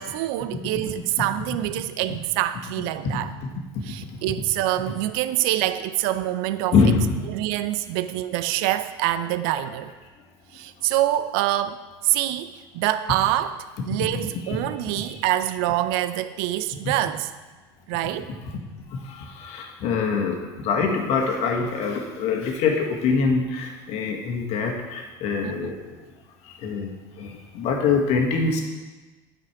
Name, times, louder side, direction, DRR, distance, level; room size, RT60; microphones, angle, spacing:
voice 1, 0.0-3.3 3.9-6.7 7.3-9.9 10.5-17.3 17.9-18.3 25.4-25.8, right 13 dB, 70° right, 13 dB, 0.4 m, -25 dB
voice 2, 6.7-7.2 13.9-14.6 15.0-15.1 16.8-16.9 18.9-25.8 26.4-26.9 27.2-28.6, left 5 dB, 60° left, 1 dB, 1.5 m, -24 dB
9.0 x 5.1 x 4.7 m, 1.2 s
supercardioid pair, 95°, 13 cm